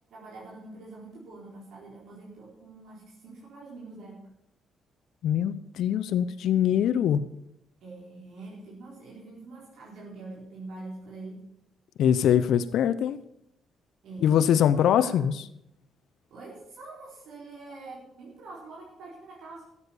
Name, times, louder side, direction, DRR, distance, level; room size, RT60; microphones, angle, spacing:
voice 1, 0.1-4.2 7.8-11.4 14.0-15.3 16.3-19.7, right 2 dB, 75° right, 4.3 m, -45 dB
voice 2, 5.2-7.2 12.0-13.2 14.2-15.3, left 9 dB, 75° left, 0.7 m, -23 dB
13.0 x 8.4 x 7.0 m
cardioid pair, 90°, 0 cm